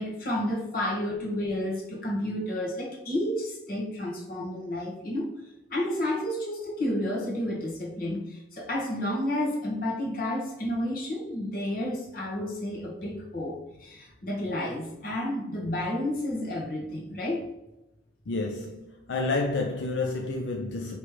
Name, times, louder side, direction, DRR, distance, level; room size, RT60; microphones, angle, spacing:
voice 1, 0.0-5.3 5.7-17.5, left 1 dB, 50° left, 1.3 m, -31 dB
voice 2, 18.3-21.0, left 3 dB, 85° left, 0.5 m, -29 dB
4.8 x 3.2 x 3.2 m
head